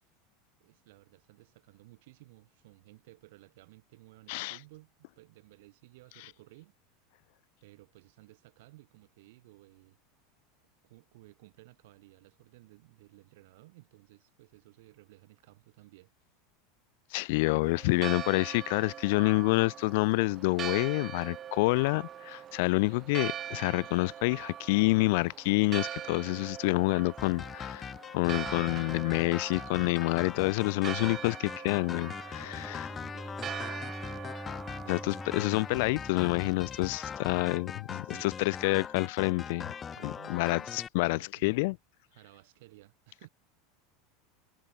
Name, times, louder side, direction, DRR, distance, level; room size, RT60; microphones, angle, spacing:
voice 1, 0.6-6.7 7.6-10.0 10.8-16.1 32.4-34.3 37.4-37.5 38.0-38.4 39.9-40.8 41.0-41.6 42.1-43.3, right 20 dB, 70° right, 7.9 m, -56 dB
voice 2, 17.1-32.8 34.9-39.7 40.0-41.8, left 25 dB, 65° left, 0.7 m, -28 dB
Church bell, 17.6-37.1, right 10 dB, 40° right, 4.1 m, -43 dB
sound 1, 27.2-40.9, left 7 dB, 30° left, 0.5 m, -41 dB
Bowed string instrument, 32.0-37.0, left 1 dB, 5° left, 2.2 m, -45 dB
hypercardioid pair, 90°, 0 cm